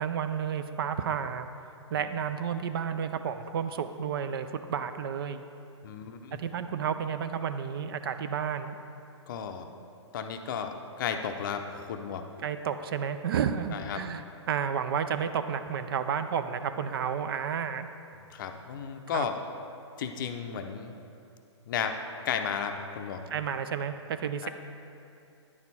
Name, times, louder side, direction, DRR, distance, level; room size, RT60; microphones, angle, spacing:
voice 1, 0.0-1.5 1.9-5.4 6.3-8.8 12.4-17.9 19.1-19.3 23.3-24.5, right 7 dB, 50° right, 10 dB, 0.4 m, -31 dB
voice 2, 5.8-6.4 9.3-9.7 10.1-12.2 13.7-14.0 18.3-19.3 20.0-20.9 21.7-22.0 22.2-23.2 24.4-24.5, left 7 dB, 45° left, 6 dB, 0.5 m, -34 dB
9.9 x 4.4 x 4.1 m, 2.6 s
hypercardioid pair, 145°, 15 cm